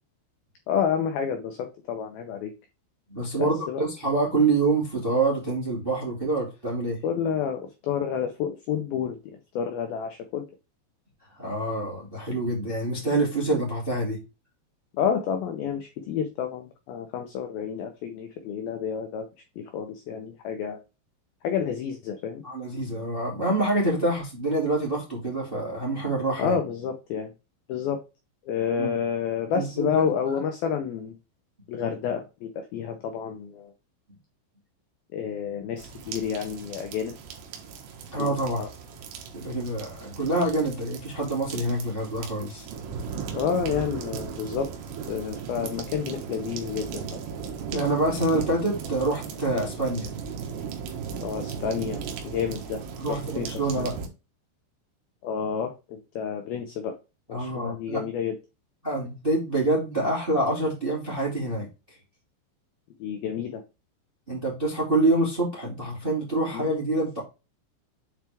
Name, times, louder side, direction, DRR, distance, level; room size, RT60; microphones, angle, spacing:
voice 1, 0.7-2.5 3.4-3.8 7.0-10.5 14.9-19.3 19.6-20.8 21.4-22.4 26.4-27.3 27.7-28.0 28.5-31.1 31.7-33.7 35.1-37.2 38.2-38.7 43.3-44.7 45.1-47.2 49.5-49.7 51.2-52.8 53.1-53.5 53.8-53.9 55.2-57.0 57.3-58.4 63.0-63.6 66.5-66.7, left 7 dB, 85° left, 5 dB, 2.1 m, -30 dB
voice 2, 3.1-7.0 11.4-14.2 22.4-26.6 28.8-29.0 29.5-30.0 30.3-30.4 38.1-38.6 39.3-42.7 47.7-50.1 53.0-53.9 57.3-58.0 58.8-61.7 64.3-67.2, right 2 dB, 20° right, -2 dB, 1.6 m, -26 dB
sound 1, 35.8-54.1, right 6 dB, 85° right, 4.0 m, -37 dB
8.0 x 4.6 x 3.5 m, 0.28 s
omnidirectional pair, 5.6 m